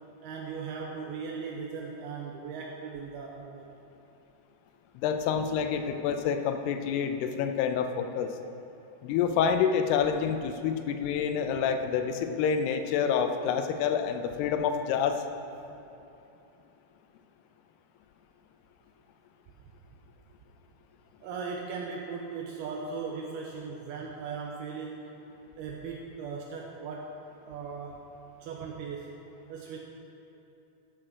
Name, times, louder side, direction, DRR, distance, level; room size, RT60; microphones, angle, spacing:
voice 1, 0.2-3.8 21.2-25.1 25.6-27.2 27.5-28.1 28.4-29.1 29.5-29.8, right 5 dB, 80° right, -1 dB, 2.6 m, -38 dB
voice 2, 5.0-8.3 9.0-15.2, left 7 dB, 80° left, 7 dB, 2.6 m, -28 dB
14.5 x 6.2 x 6.1 m, 2.8 s
omnidirectional pair, 4.7 m